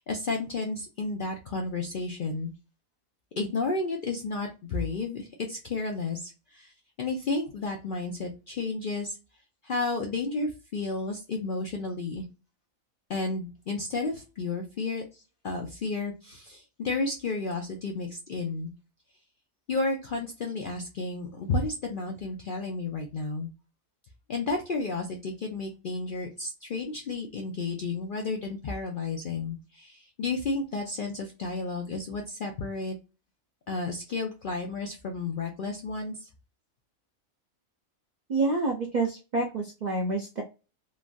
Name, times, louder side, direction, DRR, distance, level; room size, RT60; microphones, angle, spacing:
voice 1, 0.1-2.5 3.4-6.7 7.0-9.2 9.6-12.2 13.1-15.0 15.4-18.7 19.7-23.5 24.3-33.0 33.7-36.2, left 3 dB, 60° left, 2 dB, 0.5 m, -32 dB
voice 2, 38.3-40.4, right 3 dB, 60° right, 0 dB, 0.4 m, -28 dB
3.1 x 2.5 x 2.2 m, 0.30 s
omnidirectional pair, 1.4 m